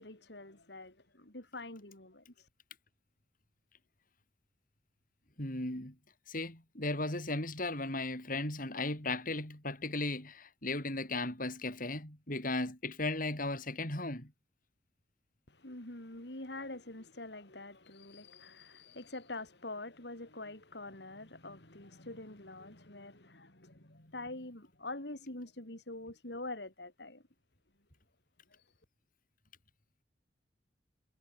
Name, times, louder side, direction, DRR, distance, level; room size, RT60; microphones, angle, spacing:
voice 1, 0.0-2.5 15.5-27.2 28.5-28.7, left 2 dB, 70° left, 3.9 m, -45 dB
voice 2, 5.4-5.9 6.3-14.3, left 2 dB, 50° left, 6.9 m, -36 dB
head